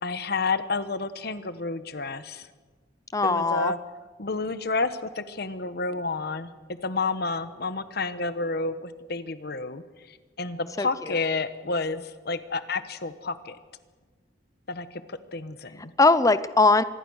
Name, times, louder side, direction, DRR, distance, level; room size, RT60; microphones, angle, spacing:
voice 1, 0.0-2.5 3.2-3.8 4.2-6.5 6.8-13.6 14.7-15.9, left 3 dB, 55° left, 12 dB, 1.3 m, -30 dB
voice 2, 3.1-3.7 10.8-11.1 16.0-16.8, left 3 dB, 20° left, 14 dB, 0.7 m, -20 dB
26.0 x 20.5 x 6.5 m, 1.3 s
head